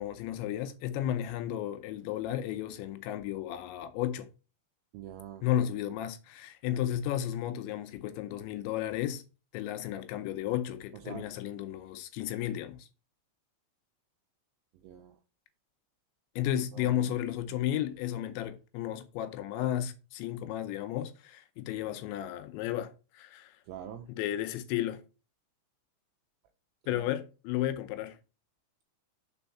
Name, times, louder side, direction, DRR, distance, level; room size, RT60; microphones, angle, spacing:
voice 1, 0.0-4.3 5.4-9.2 9.5-12.9 16.4-23.5 24.2-25.0 26.9-28.2, left 12 dB, 80° left, 2.9 m, -33 dB
voice 2, 4.9-5.5 10.9-11.3 14.7-15.2 16.7-17.7 23.7-24.1 26.8-27.1, right 10 dB, 85° right, 2.4 m, -46 dB
6.2 x 4.4 x 5.5 m
omnidirectional pair, 5.4 m